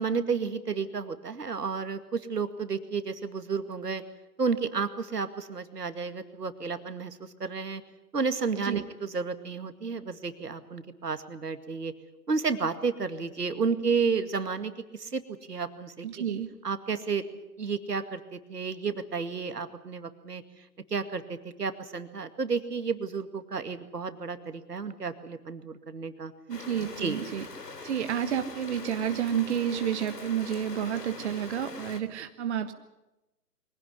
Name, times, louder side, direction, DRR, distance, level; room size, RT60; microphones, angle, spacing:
voice 1, 0.0-4.0 4.4-7.8 8.1-11.9 12.3-15.2 15.5-16.2 16.6-17.2 17.6-20.4 20.9-26.3 27.0-27.2, right 5 dB, 75° right, 10 dB, 2.3 m, -31 dB
voice 2, 16.0-16.5 26.5-27.4 27.8-32.7, right 9 dB, 45° right, 8 dB, 1.4 m, -30 dB
sound 1, 26.5-32.0, left 3 dB, 80° left, 3.1 m, -43 dB
23.5 x 16.5 x 9.8 m, 0.98 s
figure-of-eight pair, 135°, 47 cm